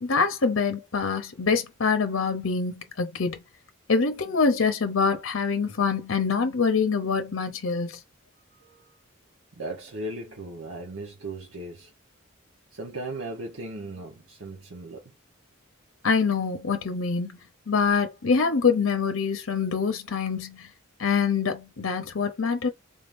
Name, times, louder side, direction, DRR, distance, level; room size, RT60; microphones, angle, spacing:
voice 1, 0.0-3.4 3.9-8.0 16.0-17.4 17.7-20.7 21.0-22.7, left 5 dB, 75° left, 0.7 m, -25 dB
voice 2, 8.5-8.9 9.6-11.9 12.7-15.0, right 2 dB, 80° right, 1.0 m, -37 dB
3.6 x 3.6 x 2.6 m
head